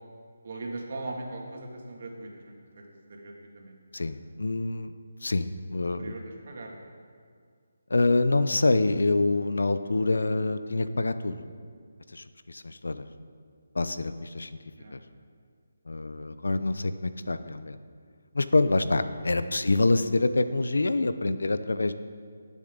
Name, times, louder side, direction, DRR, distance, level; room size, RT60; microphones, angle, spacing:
voice 1, 0.4-4.1 6.0-6.8 14.8-14.9 19.6-19.8, right 2 dB, 50° right, 0 dB, 2.3 m, -40 dB
voice 2, 3.9-4.9 5.2-6.1 7.9-11.4 12.1-13.1 13.7-14.6 14.9-15.0 15.9-17.8 18.3-21.9, left 2 dB, 85° left, 11 dB, 0.7 m, -26 dB
18.5 x 7.2 x 3.9 m, 2.1 s
figure-of-eight pair, 165°, 0 cm